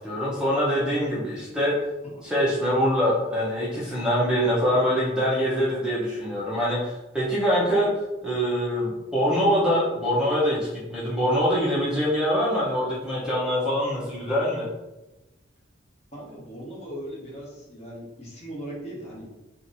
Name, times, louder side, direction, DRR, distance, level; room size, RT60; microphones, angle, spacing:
voice 1, 0.0-1.7 2.2-7.9 8.2-14.7, equal, 5° right, -7 dB, 0.7 m, -24 dB
voice 2, 4.5-5.2 16.1-19.3, right 1 dB, 35° left, -4 dB, 1.0 m, -39 dB
2.8 x 2.5 x 3.9 m, 1.0 s
head